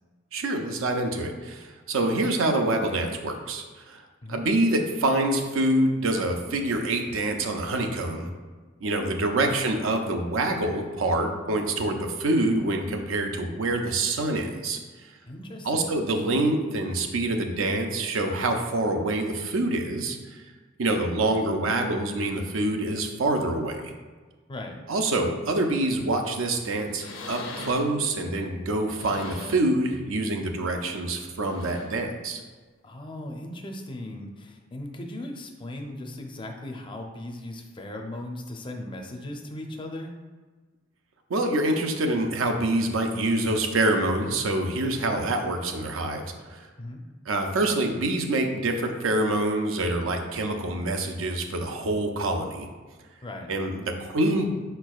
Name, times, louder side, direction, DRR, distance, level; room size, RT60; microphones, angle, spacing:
voice 1, 0.3-4.0 4.3-8.3 8.8-14.8 15.6-20.4 20.8-23.9 24.9-32.4 41.3-46.6 47.3-52.7 53.5-54.5, right 2 dB, 85° right, 4 dB, 0.5 m, -26 dB
voice 2, 9.4-9.9 15.3-16.1 24.5-24.8 32.8-40.1 46.8-47.0 53.2-53.5, left 1 dB, 25° left, 3 dB, 0.5 m, -38 dB
sound 1, 25.8-26.1 26.5-26.7 26.9-28.0 28.7-29.8 30.2-30.4 31.3-32.1 33.1-33.2, left 2 dB, 75° left, 0.7 m, -41 dB
5.0 x 4.5 x 2.3 m, 1.4 s
head